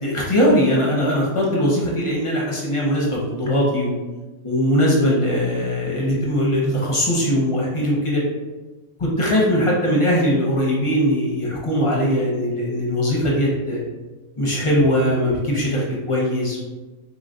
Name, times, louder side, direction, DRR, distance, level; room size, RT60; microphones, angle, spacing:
voice 1, 0.0-3.9 4.4-8.2 9.0-13.8 14.4-16.6, equal, 40° left, -4 dB, 0.4 m, -20 dB
3.8 x 3.1 x 2.6 m, 1.2 s
omnidirectional pair, 1.5 m